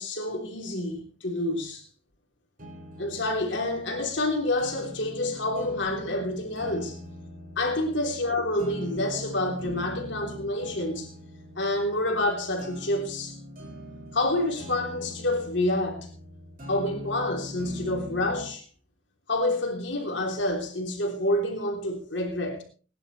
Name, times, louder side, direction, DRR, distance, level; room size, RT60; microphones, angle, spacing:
voice 1, 0.0-1.8 3.0-7.0 7.6-11.1 11.5-13.4 14.1-16.1 16.7-18.6 19.3-22.6, left 1 dB, 70° left, 3.3 m, -28 dB
sound 1, 2.6-18.6, equal, 45° right, 5.2 m, -42 dB
22.0 x 11.0 x 3.2 m
head